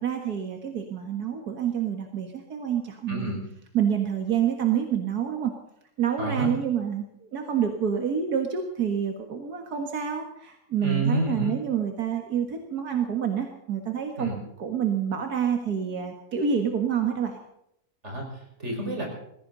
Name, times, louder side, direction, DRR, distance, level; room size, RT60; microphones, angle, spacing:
voice 1, 0.0-3.3 3.7-5.5 6.0-7.0 7.3-14.3 14.6-17.4, right 8 dB, 85° right, 4 dB, 2.2 m, -27 dB
voice 2, 3.1-3.4 6.2-6.5 10.8-11.5 14.2-14.4 18.0-19.1, right 2 dB, 45° right, 1 dB, 5.6 m, -29 dB
19.5 x 16.5 x 4.0 m, 0.77 s
omnidirectional pair, 1.6 m